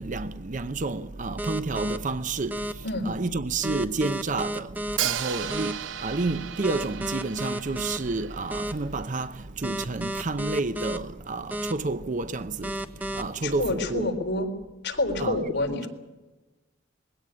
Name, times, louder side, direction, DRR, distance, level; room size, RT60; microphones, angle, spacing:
voice 1, 0.0-2.6 3.0-12.7 13.1-14.1 15.2-15.4, right 3 dB, 40° right, 0.7 m, -30 dB
sound 1, 1.4-2.0 2.5-2.7 3.6-5.0 5.5-5.7 6.6-8.0 8.5-8.7 9.6-11.0 11.5-11.7 12.6-13.2, right 1 dB, 10° right, 1.0 m, -31 dB
Hi-hat, 5.0-8.9, right 10 dB, 80° right, 0.9 m, -34 dB
voice 2, 13.4-14.5 14.8-15.9, left 2 dB, 60° left, 4.1 m, -27 dB
21.0 x 17.0 x 9.6 m
head